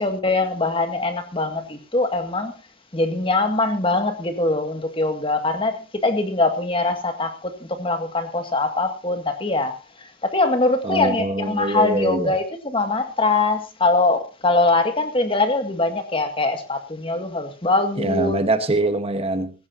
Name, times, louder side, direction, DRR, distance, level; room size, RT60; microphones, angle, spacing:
voice 1, 0.0-2.5 2.9-18.4, left 2 dB, 25° left, 6 dB, 2.0 m, -22 dB
voice 2, 10.8-12.3 18.0-19.5, right 2 dB, 30° right, 8 dB, 1.3 m, -23 dB
18.5 x 16.0 x 2.8 m, 0.31 s
head